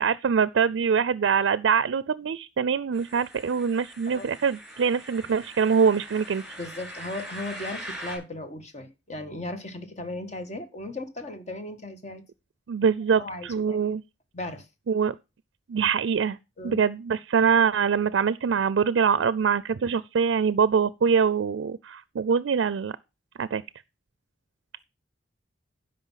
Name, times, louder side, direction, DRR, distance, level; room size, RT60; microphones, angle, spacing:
voice 1, 0.0-6.4 12.7-14.0 14.9-15.1 15.7-16.4 16.6-23.0 23.4-23.6, right 6 dB, 90° right, 0.4 m, -24 dB
sound 1, 2.9-8.2, equal, ahead, 5.4 m, -42 dB
voice 2, 6.6-12.2 13.1-13.8 14.3-14.7 16.6-16.8, left 2 dB, 40° left, 1.7 m, -36 dB
12.0 x 5.3 x 5.7 m
head